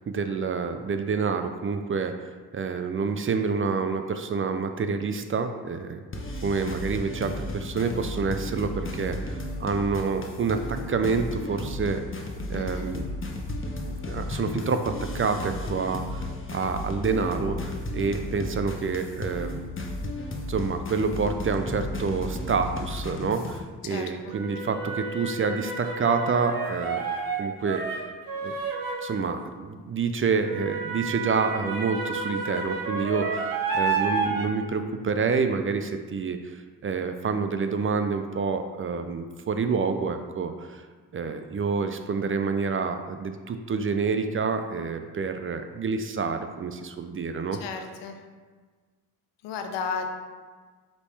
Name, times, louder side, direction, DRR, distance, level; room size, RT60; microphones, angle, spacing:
voice 1, 0.1-6.0 6.4-13.0 14.1-19.6 20.5-27.0 27.4-28.1 28.4-28.5 29.0-40.8 41.1-47.6, right 5 dB, 30° right, 8 dB, 0.4 m, -28 dB
sound 1, 6.1-23.6, left 2 dB, 30° left, 0.9 m, -34 dB
voice 2, 12.5-12.9 23.8-24.4 47.6-48.2 49.4-50.1, left 6 dB, 85° left, 5 dB, 0.6 m, -34 dB
sound 2, 24.3-29.3 30.4-34.5, right 4 dB, 55° right, 0.9 m, -30 dB
5.2 x 3.2 x 3.2 m, 1.5 s
supercardioid pair, 45°, 41 cm